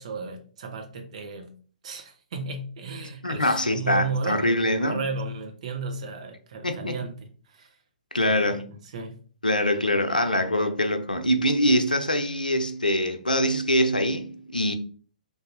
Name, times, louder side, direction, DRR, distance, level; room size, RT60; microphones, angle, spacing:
voice 1, 0.0-1.6 1.8-7.7 8.2-9.2, right 4 dB, 50° right, 0.9 m, -34 dB
voice 2, 3.2-5.0 6.6-6.9 8.1-8.7 9.4-14.7, left 1 dB, 85° left, 0.6 m, -24 dB
3.5 x 2.6 x 4.1 m
figure-of-eight pair, 120°, 4 cm